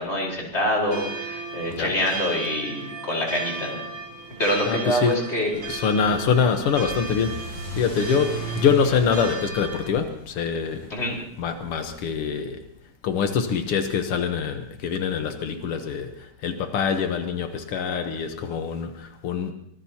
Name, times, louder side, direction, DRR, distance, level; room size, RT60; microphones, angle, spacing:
voice 1, 0.0-3.8 4.4-5.5 10.9-11.2, left 1 dB, 30° left, -2 dB, 4.7 m, -25 dB
sound 1, 0.9-9.9, right 4 dB, 90° right, 3.9 m, -36 dB
voice 2, 4.7-5.2 5.7-10.9 11.4-12.6 13.0-19.5, left 6 dB, 90° left, 6 dB, 2.1 m, -25 dB
Car / Accelerating revving vroom, 5.5-12.3, equal, 75° left, 7.9 m, -37 dB
24.5 x 19.5 x 2.9 m, 0.70 s
omnidirectional pair, 2.4 m